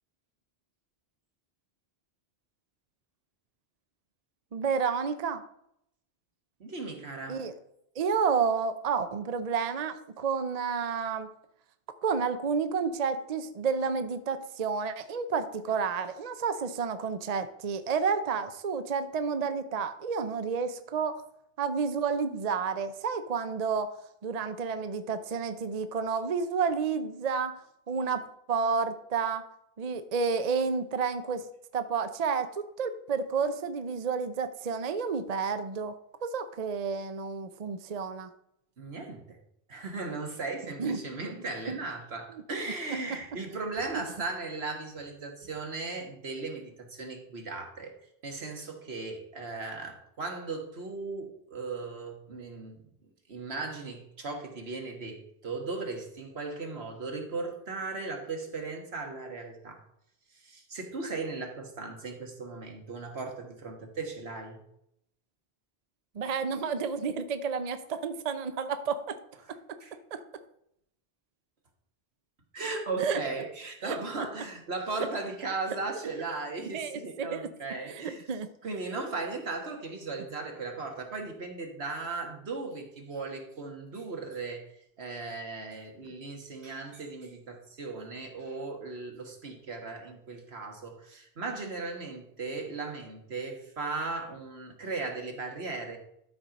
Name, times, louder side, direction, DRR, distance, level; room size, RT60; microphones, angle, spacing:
voice 1, 4.5-5.4 7.3-7.5 8.0-11.3 12.0-21.2 21.6-23.9 24.2-27.5 27.9-28.2 28.5-29.4 29.8-31.4 31.7-35.9 36.2-38.3 40.8-41.0 41.7-41.8 42.6-42.7 66.1-69.2 70.1-70.2 73.0-73.2 73.8-74.0 76.7-77.5 77.9-78.0 78.3-78.5, right 5 dB, 45° right, 10 dB, 0.6 m, -30 dB
voice 2, 6.6-7.5 38.8-39.4 39.7-47.9 48.2-52.8 53.3-59.8 60.3-64.6 69.4-69.5 69.8-69.9 72.5-78.3 78.6-84.6 85.0-96.0, right 3 dB, 80° right, 3 dB, 1.8 m, -37 dB
12.5 x 4.4 x 5.2 m, 0.75 s
omnidirectional pair, 1.1 m